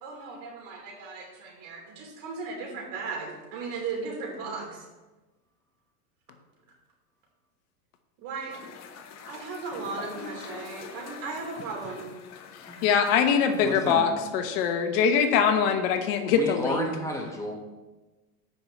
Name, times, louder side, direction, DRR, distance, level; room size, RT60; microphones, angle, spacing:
voice 1, 0.0-4.9 8.2-8.5 9.3-12.0, right 4 dB, 55° right, 0 dB, 3.2 m, -36 dB
sound 1, 8.5-14.0, left 5 dB, 35° left, 1.1 m, -44 dB
voice 2, 12.8-16.9, left 7 dB, 55° left, 7 dB, 1.1 m, -23 dB
voice 3, 13.6-14.1 16.3-17.5, equal, 5° left, 0 dB, 1.4 m, -32 dB
15.0 x 5.6 x 3.1 m, 1.2 s
hypercardioid pair, 105°, 45 cm